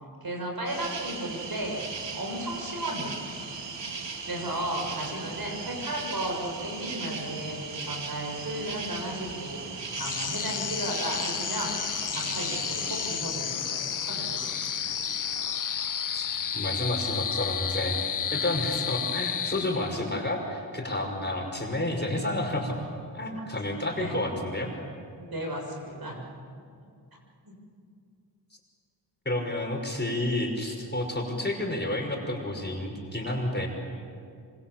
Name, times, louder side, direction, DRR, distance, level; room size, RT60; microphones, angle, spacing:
voice 1, 0.2-1.8 2.1-3.2 4.2-11.7 12.1-14.7 24.0-24.1 25.2-26.2 27.4-27.5, right 1 dB, 55° right, 1 dB, 6.9 m, -34 dB
sound 1, 0.7-13.2, right 4 dB, 75° right, 2.4 m, -37 dB
sound 2, 9.9-20.1, left 8 dB, 45° left, 0.7 m, -31 dB
voice 2, 16.5-18.0 18.3-22.7 23.1-24.7 29.3-33.7, left 1 dB, 25° left, 1 dB, 5.7 m, -30 dB
27.0 x 25.0 x 7.5 m, 2.3 s
cardioid pair, 55°, 43 cm